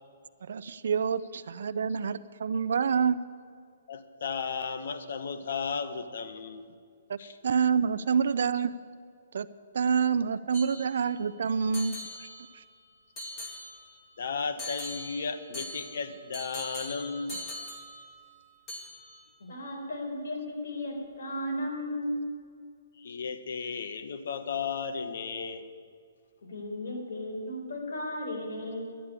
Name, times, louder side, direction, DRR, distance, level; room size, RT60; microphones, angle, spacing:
voice 1, 0.5-3.2 7.1-7.2 7.4-8.7 9.3-9.5 9.7-12.3 12.5-12.6, right 6 dB, 65° right, 12 dB, 0.4 m, -27 dB
voice 2, 3.9-6.7 7.2-7.4 14.2-17.7 23.0-25.6, left 5 dB, 60° left, 10 dB, 1.0 m, -35 dB
sound 1, 10.5-11.3 11.7-12.7 13.2-14.1 14.6-18.4 18.7-19.3, left 1 dB, 20° left, 2.3 m, -42 dB
voice 3, 19.4-22.2 26.5-29.0, left 1 dB, 75° left, 1 dB, 4.2 m, -35 dB
11.5 x 8.1 x 10.0 m, 2.2 s
hypercardioid pair, 170°, 0 cm